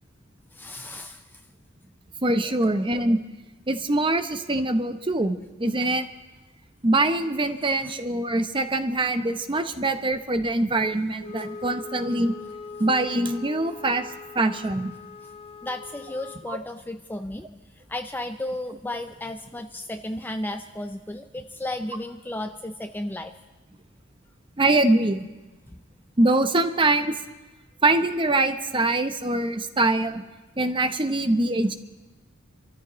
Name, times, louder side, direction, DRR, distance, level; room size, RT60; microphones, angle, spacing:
voice 1, 0.5-1.2 2.6-2.8 7.7-7.8 15.6-17.6 17.9-23.3, left 1 dB, 10° left, 7 dB, 0.4 m, -34 dB
voice 2, 2.2-3.2 3.7-6.1 6.8-12.3 12.8-14.1 14.3-14.9 16.5-16.6 24.6-25.3 26.2-27.2 27.8-30.2 30.6-31.7, right 2 dB, 25° right, 8 dB, 0.8 m, -23 dB
Wind instrument woodwind instrument, 11.2-16.5, left 4 dB, 30° left, 1.0 m, -41 dB
28.5 x 14.0 x 3.1 m, 1.1 s
head